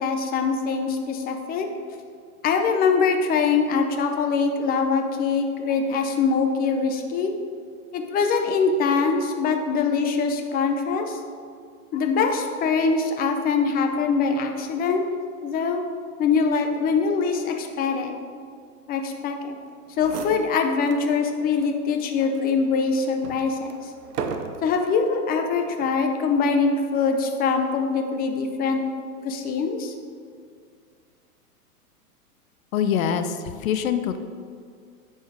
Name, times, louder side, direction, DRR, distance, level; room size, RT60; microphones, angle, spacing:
voice 1, 0.0-1.7 2.4-7.3 7.9-11.2 11.9-15.0 15.4-15.8 16.2-18.2 18.9-19.6 20.0-23.9 24.6-28.8 29.2-29.9, left 5 dB, 20° left, 4 dB, 0.6 m, -23 dB
sound 1, 19.7-19.8 20.0-21.1 21.6-21.7 22.3-24.9 25.7-26.0, right 5 dB, 80° right, 0.9 m, -35 dB
voice 2, 32.7-34.2, left 8 dB, 60° left, 9 dB, 0.8 m, -24 dB
10.5 x 4.5 x 4.8 m, 2.2 s
hypercardioid pair, 120°, 46 cm